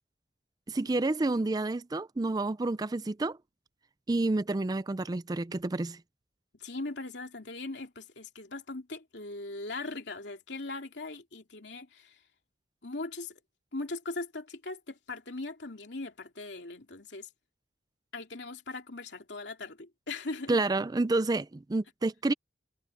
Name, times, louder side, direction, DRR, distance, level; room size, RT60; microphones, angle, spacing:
voice 1, 0.7-3.4 4.1-6.0 20.5-22.3, right 2 dB, 20° right, 0.4 m, -29 dB
voice 2, 6.5-12.2 12.8-13.4 13.7-17.3 18.1-20.6, left 2 dB, 75° left, 2.8 m, -40 dB
head